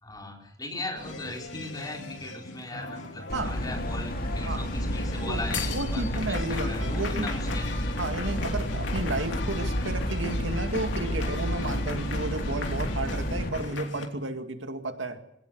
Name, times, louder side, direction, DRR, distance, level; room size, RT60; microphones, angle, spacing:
voice 1, 0.0-7.7, left 2 dB, 20° left, 1 dB, 4.6 m, -39 dB
sound 1, 0.9-14.1, left 3 dB, 75° left, 3.0 m, -38 dB
sound 2, 3.3-13.5, equal, 50° left, 2.6 m, -30 dB
voice 2, 5.7-7.3 8.0-15.2, right 2 dB, 85° right, 6 dB, 2.2 m, -32 dB
22.5 x 18.0 x 7.9 m, 0.76 s
head